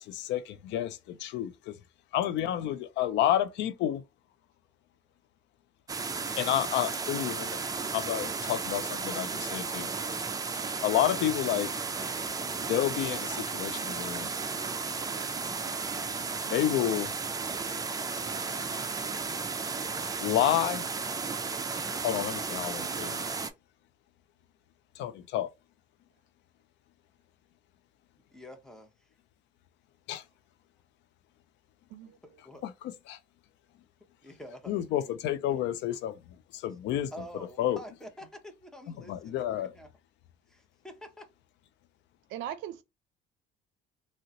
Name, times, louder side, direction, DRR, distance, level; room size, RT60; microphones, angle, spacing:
voice 1, 0.0-1.7 2.1-4.0 6.4-7.6 7.9-9.9 10.8-11.7 12.7-14.3 16.5-17.1 20.2-20.9 22.0-23.2 25.0-25.5 30.1-30.2 32.6-32.7 33.1-33.2 34.7-36.2 36.5-37.1 37.6-37.8 39.1-39.7, left 11 dB, 65° left, 0.5 m, -30 dB
sound 1, 5.9-23.5, right 4 dB, 20° right, 0.4 m, -34 dB
voice 2, 28.3-29.1 32.2-32.7 34.2-35.2 35.5-35.6 37.1-39.9 40.5-41.3, equal, 5° left, 0.8 m, -48 dB
voice 3, 42.3-42.8, right 11 dB, 75° right, 0.5 m, -38 dB
3.7 x 2.1 x 2.8 m
cardioid pair, 100°, 20 cm